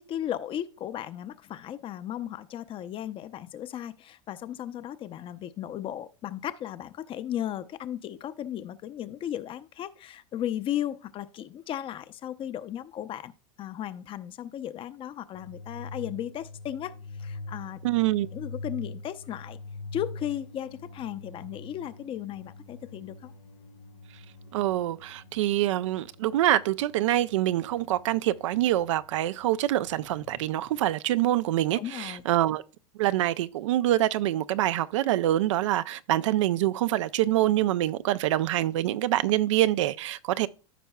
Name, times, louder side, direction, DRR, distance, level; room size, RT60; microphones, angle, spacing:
voice 1, 0.0-13.3 13.6-17.8 18.3-19.6 19.9-23.3 31.7-32.2, left 11 dB, 30° left, 0.6 m, -35 dB
sound 1, 15.3-30.9, left 3 dB, 90° left, 2.9 m, -44 dB
voice 2, 17.8-18.3 24.5-32.6 33.0-40.5, right 14 dB, 70° right, 0.5 m, -25 dB
14.0 x 5.3 x 2.3 m
hypercardioid pair, 100°, 16 cm